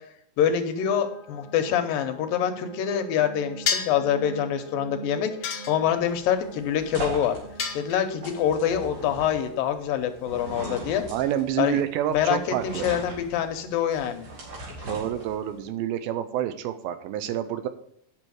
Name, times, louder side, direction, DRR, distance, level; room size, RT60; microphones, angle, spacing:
voice 1, 0.4-7.4 7.7-11.0 11.6-11.8 12.1-14.3, left 9 dB, 75° left, 7 dB, 2.4 m, -25 dB
sound 1, 0.7-11.0, right 5 dB, 20° left, 2.8 m, -44 dB
sound 2, 3.7-4.1 5.4-6.1 7.6-8.3, left 6 dB, 55° left, 1.5 m, -29 dB
sound 3, 5.8-15.7, right 1 dB, 60° right, 4.0 m, -39 dB
voice 2, 11.1-12.9 14.9-17.7, right 11 dB, 85° right, 11 dB, 2.4 m, -28 dB
8.9 x 6.1 x 6.3 m, 0.68 s
omnidirectional pair, 4.3 m